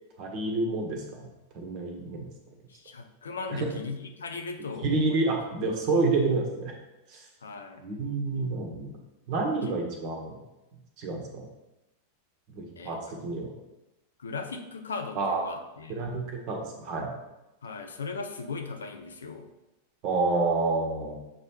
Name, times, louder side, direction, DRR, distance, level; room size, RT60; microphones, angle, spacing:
voice 1, 0.2-2.3 3.5-3.7 4.8-6.7 7.1-7.2 7.8-9.0 9.3-10.4 11.0-11.5 12.5-13.5 15.1-15.4 15.9-17.1 20.0-21.1, right 3 dB, 40° right, 1 dB, 1.3 m, -29 dB
voice 2, 2.7-5.2 7.4-7.9 9.6-9.7 12.8-13.2 14.2-16.0 17.6-19.5, left 4 dB, 70° left, 5 dB, 0.6 m, -38 dB
7.2 x 3.2 x 4.5 m, 0.96 s
figure-of-eight pair, 90°, 0 cm